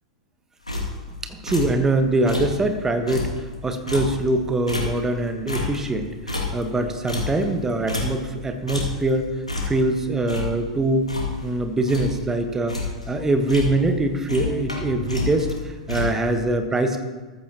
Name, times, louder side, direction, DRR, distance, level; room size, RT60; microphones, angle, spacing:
sound 1, 0.7-1.2 1.5-1.8 2.2-2.6 2.9-5.2 5.5-8.4 8.7-9.1 9.5-9.9 10.3-11.6 11.9-12.3 12.5-13.1 13.5-14.0 14.3-16.4, left 3 dB, 90° left, 2.3 m, -29 dB
voice 1, 1.2-3.3 3.6-9.3 9.6-11.1 11.4-12.8 13.1-17.0, right 2 dB, 15° right, 7 dB, 1.3 m, -23 dB
14.5 x 14.0 x 2.9 m, 1.3 s
figure-of-eight pair, 95°, 3 cm